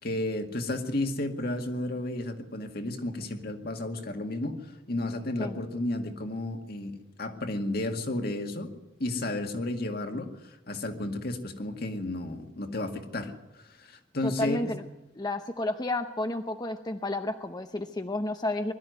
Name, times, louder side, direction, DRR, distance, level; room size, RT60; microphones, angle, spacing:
voice 1, 0.0-4.6 4.9-8.7 9.0-13.3 13.7-14.6, left 1 dB, 60° left, 5 dB, 2.1 m, -32 dB
voice 2, 14.2-14.8 15.2-18.7, left 2 dB, 20° left, 7 dB, 0.8 m, -31 dB
21.0 x 13.0 x 9.4 m, 0.96 s
head